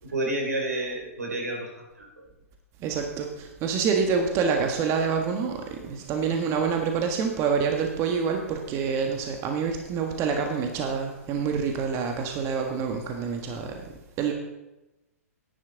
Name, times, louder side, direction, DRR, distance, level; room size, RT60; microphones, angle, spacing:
voice 1, 0.0-2.2, right 1 dB, 90° right, 0 dB, 3.3 m, -30 dB
voice 2, 2.8-13.8 14.2-14.3, right 6 dB, 35° right, 3 dB, 1.5 m, -27 dB
11.0 x 10.0 x 3.9 m, 0.96 s
hypercardioid pair, 115°, 8 cm